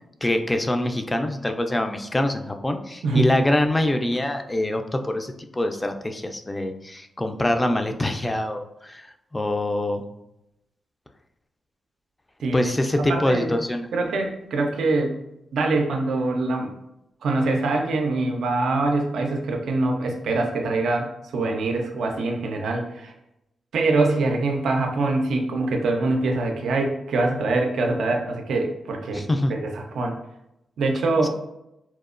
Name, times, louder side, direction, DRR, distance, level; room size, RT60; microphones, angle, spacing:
voice 1, 0.2-10.0 12.5-13.9 29.1-29.6, left 1 dB, 20° left, 6 dB, 0.3 m, -24 dB
voice 2, 3.0-3.4 12.4-12.7 13.0-13.5 13.9-15.2 15.5-16.7 17.2-23.1 23.7-29.2 29.5-30.2 30.8-31.3, right 2 dB, 80° right, 2 dB, 0.3 m, -24 dB
2.9 x 2.0 x 2.4 m, 0.85 s
cardioid pair, 60°, 0 cm